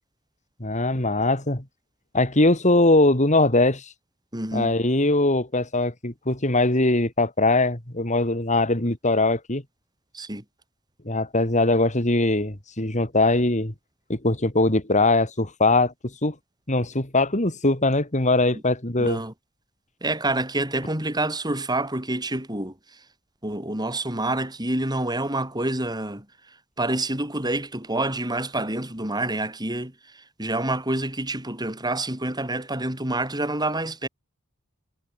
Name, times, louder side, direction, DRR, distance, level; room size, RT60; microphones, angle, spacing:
voice 1, 0.6-1.6 2.1-3.9 4.5-9.6 11.1-13.7 14.1-15.9 16.2-16.4 16.7-19.2, left 2 dB, 35° left, 3.3 m, -21 dB
voice 2, 4.3-4.8 10.1-10.4 18.5-18.6 19.0-19.3 20.0-23.0 23.4-34.1, right 2 dB, 20° right, 6.8 m, -28 dB
head